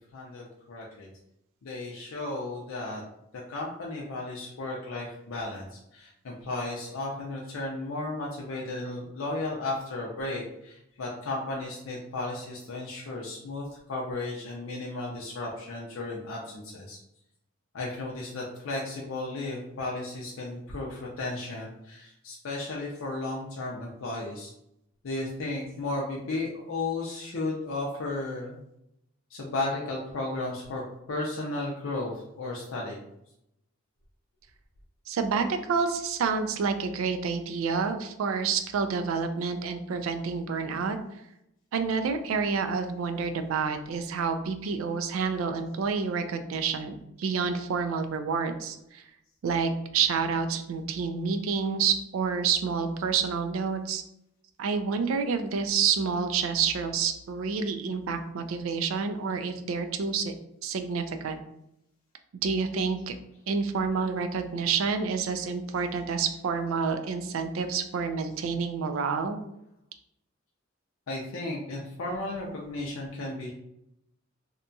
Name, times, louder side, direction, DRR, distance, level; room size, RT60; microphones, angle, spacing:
voice 1, 0.1-1.1 1.6-3.0 3.3-17.0 17.7-24.5 25.0-28.6 29.3-30.8 31.1-33.0 71.1-73.5, left 2 dB, 85° left, -3 dB, 0.5 m, -34 dB
voice 2, 35.1-41.0 41.7-49.0 49.4-54.0 54.6-60.3 60.6-61.4 62.4-63.1 63.5-69.4, right 5 dB, 80° right, 7 dB, 0.3 m, -28 dB
2.8 x 2.2 x 2.6 m, 0.80 s
head